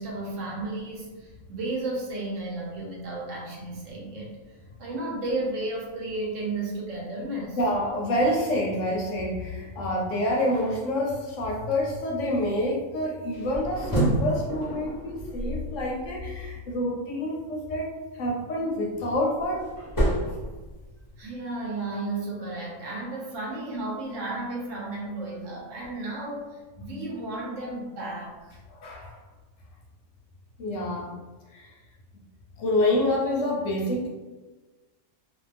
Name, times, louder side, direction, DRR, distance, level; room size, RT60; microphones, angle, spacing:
voice 1, 0.0-7.6 21.2-28.6, right 2 dB, 65° right, -3 dB, 1.0 m, -33 dB
voice 2, 7.5-19.6 28.7-29.2 30.6-31.2 31.5-31.7 32.6-34.1, left 1 dB, 70° left, -2 dB, 0.8 m, -27 dB
sound 1, 13.3-16.5 18.7-21.2, right 1 dB, 25° left, 0.4 m, -29 dB
2.5 x 2.3 x 3.2 m, 1.2 s
omnidirectional pair, 1.5 m